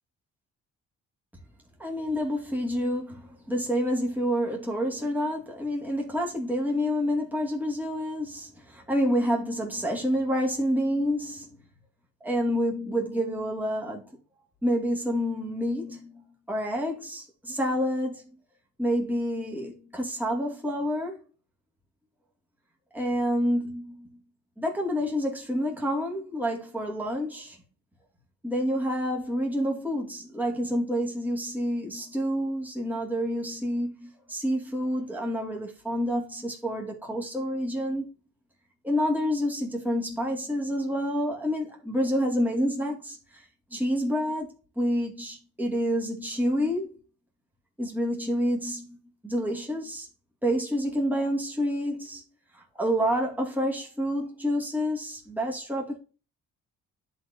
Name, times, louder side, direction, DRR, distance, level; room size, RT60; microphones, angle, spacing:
voice 1, 1.8-11.5 12.2-14.0 14.6-18.2 18.8-21.2 22.9-24.1 24.6-27.6 28.4-38.1 38.8-43.4 43.7-44.5 44.8-46.9 47.8-49.0 49.2-50.1 50.4-52.2 52.5-56.0, equal, 5° right, 2.6 m, -28 dB
11.0 x 4.2 x 2.9 m
cardioid pair, 90°, 30 cm